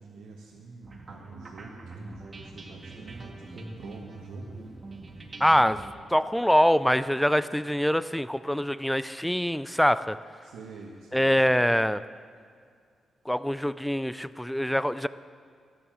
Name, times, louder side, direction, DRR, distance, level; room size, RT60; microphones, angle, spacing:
voice 1, 0.0-4.6 10.4-11.4 14.5-14.7, right 3 dB, 90° right, -3 dB, 1.6 m, -46 dB
sound 1, 0.8-5.9, right 2 dB, 40° right, 2.2 m, -43 dB
voice 2, 5.4-5.8 6.1-10.2 11.1-12.0 13.3-15.1, equal, 5° left, 15 dB, 0.4 m, -24 dB
14.0 x 10.0 x 7.6 m, 2.1 s
cardioid pair, 70°, 0 cm